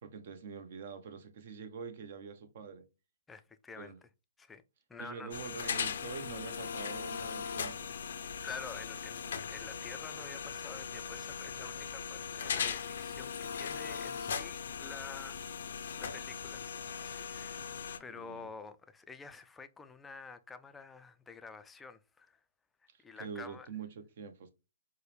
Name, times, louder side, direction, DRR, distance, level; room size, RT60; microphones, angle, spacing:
voice 1, 0.0-2.8 3.8-4.0 5.0-7.9 18.1-18.5 22.9-24.5, right 6 dB, 55° right, 0.7 m, -45 dB
voice 2, 3.3-4.1 4.4-4.6 4.9-5.4 8.4-17.7 18.0-22.4 23.0-23.7, left 4 dB, 10° left, 0.3 m, -49 dB
sound 1, 5.3-18.0, left 7 dB, 70° left, 0.5 m, -39 dB
4.6 x 2.1 x 3.1 m
hypercardioid pair, 140°, 0 cm